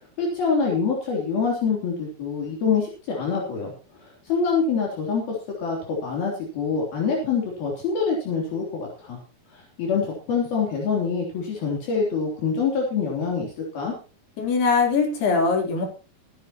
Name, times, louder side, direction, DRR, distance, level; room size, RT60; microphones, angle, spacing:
voice 1, 0.2-9.2 9.5-13.9, left 5 dB, 70° left, -2 dB, 5.3 m, -25 dB
voice 2, 14.4-15.9, left 4 dB, 85° left, 1 dB, 5.7 m, -21 dB
22.5 x 10.5 x 3.0 m, 0.35 s
omnidirectional pair, 4.5 m